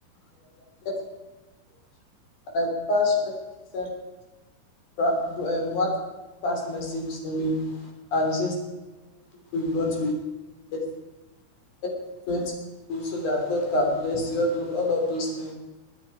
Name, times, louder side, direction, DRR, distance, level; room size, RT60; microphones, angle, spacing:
voice 1, 2.5-3.2 3.7-3.9 5.0-5.9 6.4-7.6 8.1-8.5 9.5-10.1 12.3-12.5 12.9-15.5, left 1 dB, 55° left, 0 dB, 4.9 m, -26 dB
22.5 x 9.4 x 4.9 m, 1.1 s
omnidirectional pair, 4.2 m